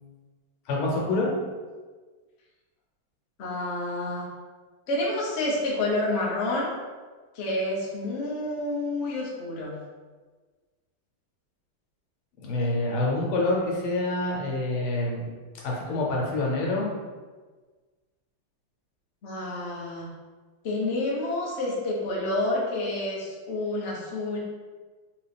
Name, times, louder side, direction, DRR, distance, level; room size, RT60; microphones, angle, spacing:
voice 1, 0.7-1.3 12.4-15.3 15.6-16.9, left 2 dB, 90° left, -3 dB, 1.8 m, -26 dB
voice 2, 3.4-4.2 4.9-6.7 7.3-9.8 19.2-20.1 20.6-24.4, left 2 dB, 55° left, -4 dB, 0.7 m, -29 dB
3.7 x 3.0 x 3.4 m, 1.4 s
omnidirectional pair, 2.3 m